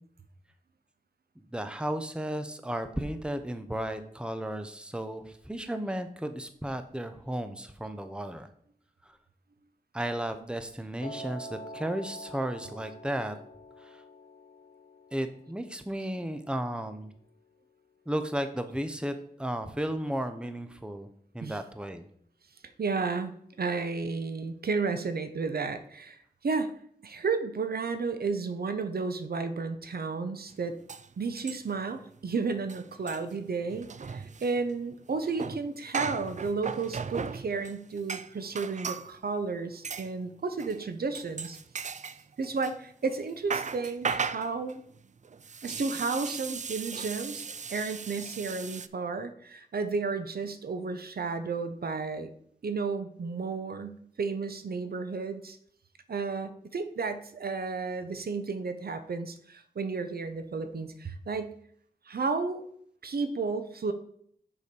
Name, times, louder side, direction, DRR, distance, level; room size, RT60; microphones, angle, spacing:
voice 1, 1.4-8.5 9.1-9.2 9.9-13.4 13.8-14.0 15.1-17.1 18.1-21.1 21.3-22.0, right 1 dB, 5° right, 8 dB, 0.7 m, -34 dB
Piano, 11.0-17.2, equal, 85° left, 1.2 m, -47 dB
voice 2, 22.8-23.3 23.6-26.7 27.0-30.8 31.2-41.6 42.4-44.8 45.6-47.4 47.7-52.3 52.6-55.6 56.1-61.5 62.1-62.6 63.0-63.9, right 4 dB, 80° right, 9 dB, 0.7 m, -32 dB
sound 1, 30.5-30.6 30.9-31.9 32.2-32.3 32.6-39.1 39.8-40.1 40.6-40.8 41.1-42.8 43.1-48.9, right 5 dB, 50° right, 0.4 m, -37 dB
6.8 x 4.9 x 5.3 m, 0.64 s
wide cardioid pair, 80°, 16 cm